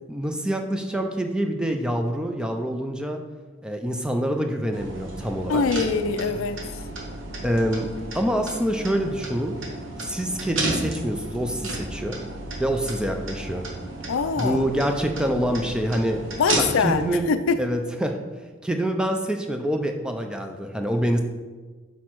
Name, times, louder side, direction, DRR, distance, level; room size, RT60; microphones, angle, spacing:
voice 1, 0.1-3.2 3.6-5.6 7.4-7.9 8.1-9.6 10.0-12.2 12.6-13.6 14.4-16.2 16.5-17.2 17.6-18.2 18.6-21.2, equal, 5° right, 4 dB, 0.4 m, -26 dB
sound 1, 4.7-17.1, right 2 dB, 65° right, 1.4 m, -33 dB
voice 2, 5.5-6.6 14.1-14.6 16.4-17.6, left 5 dB, 70° left, 11 dB, 0.4 m, -23 dB
6.1 x 4.2 x 4.6 m, 1.4 s
head